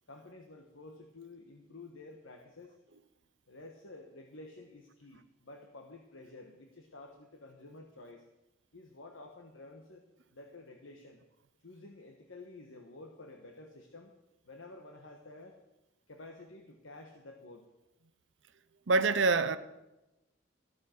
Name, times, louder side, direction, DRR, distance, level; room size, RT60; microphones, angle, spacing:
voice 1, 0.1-2.7 3.5-8.2 8.7-10.0 10.3-11.2 11.6-14.1 14.4-15.6 16.1-17.7, left 2 dB, 85° left, 1.3 m, -51 dB
voice 2, 18.9-19.6, right 3 dB, 70° right, 0.7 m, -25 dB
14.0 x 13.5 x 4.5 m
head